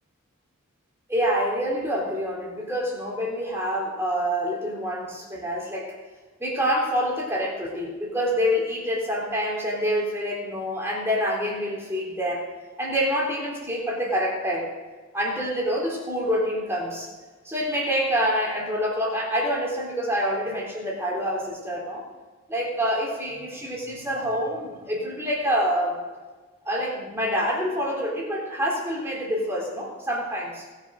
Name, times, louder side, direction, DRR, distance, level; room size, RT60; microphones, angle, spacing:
voice 1, 1.1-5.9 6.4-12.4 12.8-14.7 15.1-17.1 17.4-22.0 22.5-26.0 26.6-30.6, equal, 10° right, -3 dB, 3.5 m, -26 dB
19.5 x 7.4 x 5.1 m, 1.3 s
head